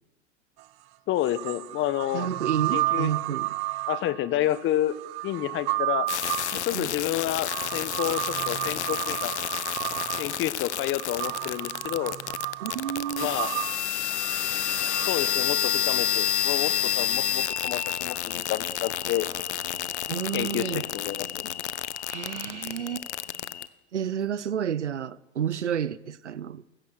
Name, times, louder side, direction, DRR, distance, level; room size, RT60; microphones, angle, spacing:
sound 1, 0.6-0.7 1.2-15.1, right 20 dB, 45° right, 1.3 m, -32 dB
voice 1, 1.1-2.3 2.7-3.4 3.9-5.0 5.2-6.1 6.5-9.3 10.2-12.2 13.2-13.5 15.1-19.3 20.3-21.5, left 13 dB, 35° left, 1.5 m, -29 dB
voice 2, 2.1-3.6 6.5-6.9 12.6-13.3 20.1-20.9 22.1-23.1 23.9-26.6, right 9 dB, 90° right, 1.0 m, -30 dB
sound 2, 6.1-23.7, left 11 dB, 75° left, 1.2 m, -30 dB
28.5 x 16.0 x 6.6 m
hypercardioid pair, 105°, 34 cm